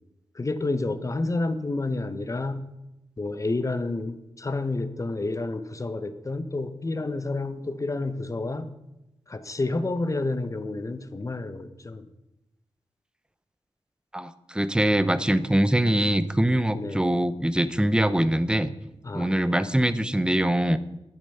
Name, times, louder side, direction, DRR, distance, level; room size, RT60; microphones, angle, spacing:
voice 1, 0.3-2.7 3.2-8.7 9.3-12.1 16.7-17.1 19.0-19.6, left 2 dB, 30° left, 12 dB, 0.8 m, -30 dB
voice 2, 14.1-18.7 19.1-20.8, right 1 dB, 10° right, 14 dB, 0.6 m, -23 dB
11.0 x 8.6 x 5.6 m, 0.93 s
wide cardioid pair, 90°, 10 cm